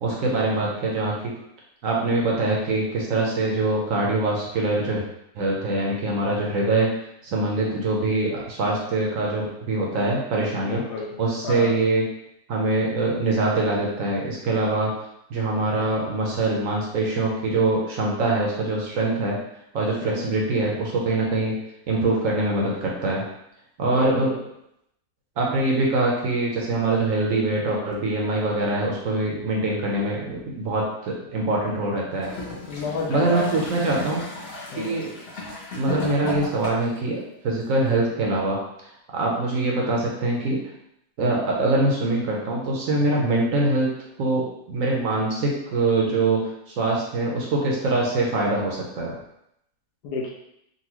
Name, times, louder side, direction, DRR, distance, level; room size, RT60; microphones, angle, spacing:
voice 1, 0.0-1.3 1.8-5.0 5.3-6.9 7.2-10.8 11.2-12.0 12.5-14.9 15.3-19.4 19.7-21.5 21.9-23.2 23.8-24.3 25.4-32.3 33.1-34.2 34.8-35.1 35.7-38.6 39.1-40.6 41.2-43.9 44.2-46.4 46.7-49.1, right 2 dB, 65° right, -2 dB, 1.0 m, -23 dB
voice 2, 10.6-11.2 11.4-11.8 20.0-20.4 23.9-24.5 32.7-33.5 34.7-35.0 50.0-50.3, left 4 dB, 85° left, -1 dB, 1.2 m, -31 dB
Gurgling / Toilet flush, 32.1-37.0 37.8-37.9, left 3 dB, 50° left, 0.9 m, -35 dB
4.0 x 2.3 x 2.9 m, 0.78 s
omnidirectional pair, 1.7 m